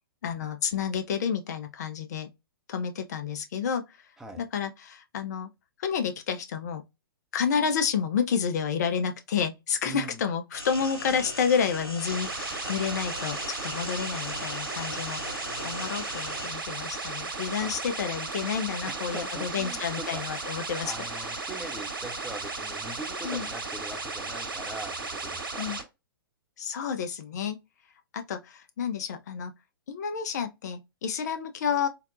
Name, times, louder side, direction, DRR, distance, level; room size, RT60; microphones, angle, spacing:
voice 1, 0.2-2.3 2.7-3.8 4.4-5.5 5.8-6.8 7.3-20.9 23.2-23.4 25.6-25.8 26.6-27.6 28.1-29.5 29.9-31.9, left 7 dB, 45° left, 0.6 m, -30 dB
voice 2, 9.8-10.2 17.6-17.8 18.9-25.8, right 2 dB, 5° right, 0.5 m, -42 dB
sound 1, 10.5-16.5, left 1 dB, 90° left, 0.8 m, -39 dB
sound 2, 12.0-25.8, right 3 dB, 65° right, 1.1 m, -35 dB
4.2 x 2.1 x 2.5 m
figure-of-eight pair, 115°, 12 cm